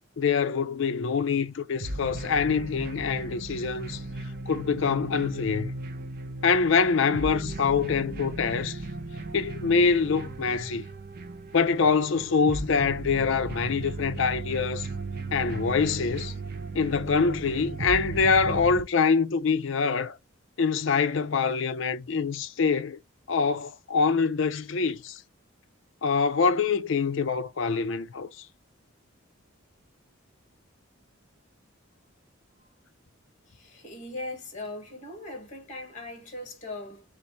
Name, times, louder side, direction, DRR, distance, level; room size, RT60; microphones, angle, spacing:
voice 1, 0.2-4.0 4.5-5.7 6.4-8.8 9.3-10.8 11.5-14.9 15.3-16.3 16.7-20.2 20.6-23.0 23.3-25.2 26.0-28.5, left 5 dB, 65° left, 0.5 m, -25 dB
sound 1, 1.8-18.8, right 2 dB, 45° right, 0.6 m, -36 dB
voice 2, 33.6-37.0, left 2 dB, 35° left, 1.3 m, -39 dB
4.0 x 2.5 x 4.4 m
head